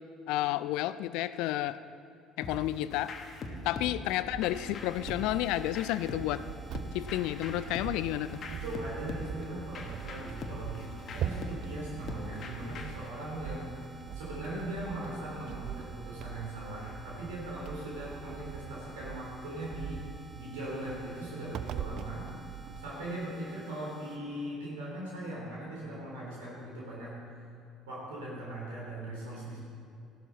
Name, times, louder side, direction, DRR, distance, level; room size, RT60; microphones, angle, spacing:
voice 1, 0.3-1.8 2.4-3.1 3.6-6.4 6.9-8.4, left 14 dB, 60° left, 15 dB, 0.4 m, -31 dB
sound 1, 2.4-13.1, left 2 dB, 45° left, 1.3 m, -43 dB
sound 2, 4.2-22.9, right 9 dB, 55° right, 0.4 m, -43 dB
sound 3, 4.5-24.2, right 1 dB, 35° right, 1.5 m, -53 dB
voice 2, 8.5-13.8 14.1-20.0 20.3-22.2 22.8-27.1 27.9-29.6, right 1 dB, 70° right, -5 dB, 3.6 m, -39 dB
14.5 x 12.0 x 4.1 m, 2.5 s
figure-of-eight pair, 55°, 0 cm